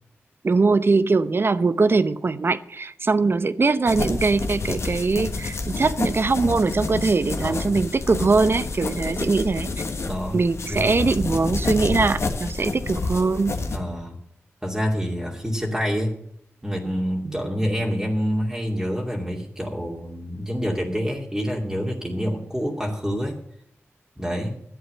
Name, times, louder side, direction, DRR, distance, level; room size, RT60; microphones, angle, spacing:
voice 1, 0.4-9.7 10.3-13.6 17.2-17.4, right 3 dB, 50° right, 15 dB, 0.7 m, -21 dB
sound 1, 3.9-13.8, left 3 dB, 65° left, 1.5 m, -29 dB
voice 2, 7.4-7.8 10.0-10.9 13.7-14.2 14.6-16.2 16.6-23.4 24.2-24.6, equal, 10° right, -2 dB, 2.5 m, -27 dB
11.5 x 7.9 x 7.8 m, 0.72 s
cardioid pair, 50°, 5 cm